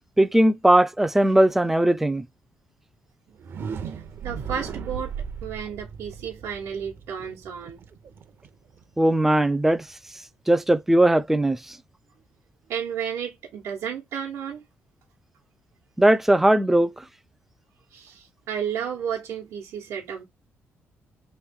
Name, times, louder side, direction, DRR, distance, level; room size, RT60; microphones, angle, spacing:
voice 1, 0.2-2.2 9.0-9.8 10.5-11.6 16.0-16.9, right 1 dB, 5° right, 0.4 m, -19 dB
sound 1, 3.3-9.2, right 6 dB, 55° right, 0.6 m, -37 dB
voice 2, 3.8-5.1 5.4-7.8 12.7-14.6 17.9-20.2, right 8 dB, 85° right, 1.0 m, -32 dB
3.1 x 3.0 x 3.4 m
cardioid pair, 120°, 5 cm